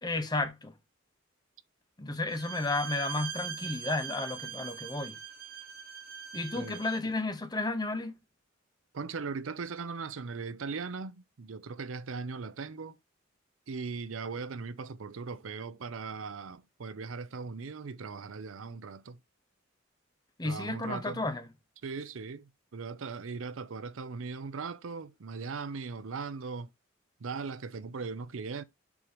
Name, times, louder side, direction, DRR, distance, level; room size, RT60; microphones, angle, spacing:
voice 1, 0.0-0.7 2.0-5.2 6.3-8.1 20.4-21.5, left 2 dB, 20° left, 0.9 m, -32 dB
Bowed string instrument, 2.3-7.1, right 8 dB, 45° right, 1.0 m, -42 dB
voice 2, 8.9-13.0 13.7-19.2 20.4-21.2 21.8-26.7 27.2-28.6, right 4 dB, 75° right, 0.5 m, -39 dB
7.1 x 3.0 x 5.1 m
head